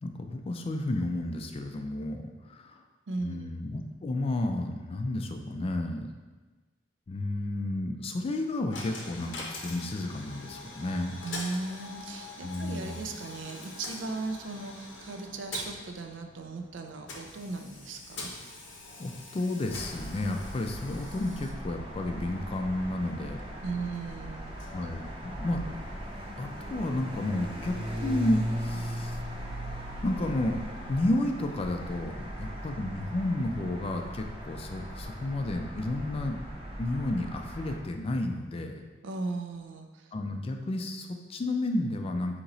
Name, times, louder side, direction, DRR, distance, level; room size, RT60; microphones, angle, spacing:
voice 1, 0.0-2.8 3.2-6.1 7.1-11.2 12.4-13.2 19.0-23.4 24.7-25.6 26.4-29.2 30.0-30.6 30.9-36.5 36.8-38.8 40.1-42.4, left 1 dB, 30° left, 5 dB, 0.3 m, -32 dB
voice 2, 3.1-3.6 11.2-18.3 23.6-24.6 39.0-39.9, right 3 dB, 80° right, 5 dB, 0.4 m, -37 dB
Coin (dropping), 8.7-25.7, left 3 dB, 80° left, 0.7 m, -45 dB
sound 1, 19.7-37.8, equal, 30° right, 0.7 m, -38 dB
4.0 x 2.9 x 3.9 m, 1.3 s
head